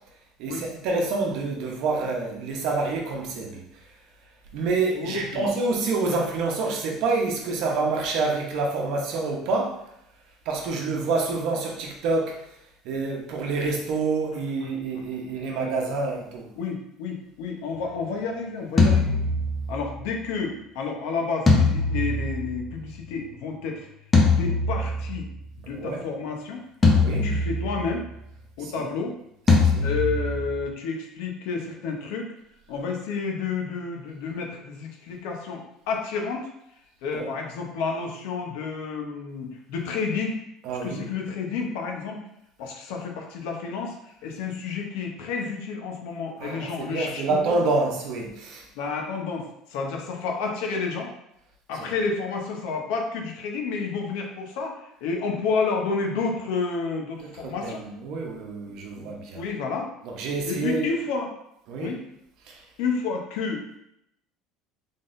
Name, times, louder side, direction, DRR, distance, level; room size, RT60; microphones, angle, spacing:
voice 1, 0.4-3.6 4.5-9.8 10.5-12.4 12.8-16.5 25.6-26.0 26.9-27.3 28.6-28.9 29.5-29.9 37.1-37.3 40.6-41.1 46.4-48.6 51.7-52.1 57.2-59.5 60.0-60.9 61.7-61.9 62.5-62.6, right 3 dB, 60° right, 0 dB, 0.8 m, -27 dB
voice 2, 4.9-5.5 11.0-11.1 14.6-15.0 15.6-15.7 16.6-19.2 19.7-23.9 24.3-25.3 25.6-26.6 27.1-28.0 28.6-29.2 29.8-32.3 32.7-36.5 37.0-40.4 40.8-42.3 42.6-47.6 48.8-51.1 51.7-57.8 58.9-59.9 60.5-61.3 61.8-62.0 62.8-63.6, left 4 dB, 75° left, 2 dB, 0.8 m, -30 dB
sound 1, 18.8-20.0 21.5-23.0 24.1-25.3 26.8-28.0 29.5-30.6, left 3 dB, 15° left, 0.6 m, -22 dB
3.9 x 3.6 x 2.6 m, 0.79 s
cardioid pair, 160°, 0 cm